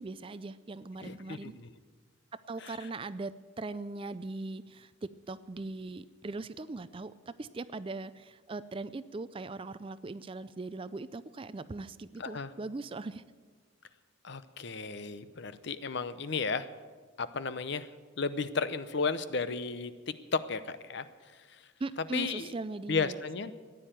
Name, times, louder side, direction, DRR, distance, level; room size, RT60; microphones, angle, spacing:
voice 1, 0.0-1.5 2.3-13.2 21.8-23.1, right 3 dB, 25° right, 15 dB, 0.4 m, -40 dB
voice 2, 1.0-1.7 2.6-2.9 12.2-12.5 14.2-16.7 17.2-17.9 18.2-21.1 21.3-21.6 22.1-22.5 22.9-23.5, left 4 dB, 55° left, 13 dB, 0.8 m, -34 dB
14.5 x 10.0 x 9.0 m, 1.5 s
head